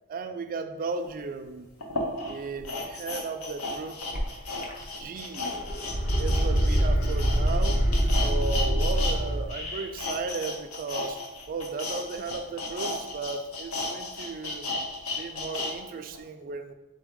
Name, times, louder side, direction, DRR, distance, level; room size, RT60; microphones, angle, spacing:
voice 1, 0.1-1.7 2.3-4.0 4.8-5.6 6.2-7.8 8.1-11.2 11.5-14.6 15.2-16.7, right 4 dB, 40° right, 8 dB, 0.3 m, -35 dB
sound 1, 1.0-1.1 1.8-9.2 9.4-15.7 16.1-16.2, left 2 dB, 75° left, 0.7 m, -34 dB
sound 2, 4.1-4.2 4.6-5.2 5.5-9.4, equal, 40° left, 0.6 m, -24 dB
3.7 x 3.5 x 3.7 m, 1.0 s
head